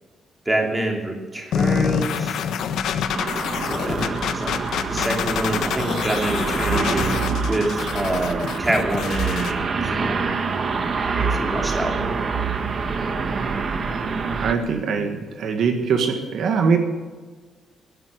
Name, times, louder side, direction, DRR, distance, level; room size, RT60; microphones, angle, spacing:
voice 1, 0.5-2.4 3.7-4.5 4.9-7.2 7.5-10.2 11.0-12.0, right 1 dB, 10° right, 1 dB, 3.1 m, -26 dB
sound 1, 1.5-9.5, left 7 dB, 75° left, 1.3 m, -26 dB
sound 2, 3.1-14.5, right 4 dB, 40° right, 1.6 m, -26 dB
voice 2, 14.4-16.8, right 5 dB, 65° right, 5 dB, 1.9 m, -22 dB
19.0 x 11.0 x 6.6 m, 1.4 s
cardioid pair, 165°, 0 cm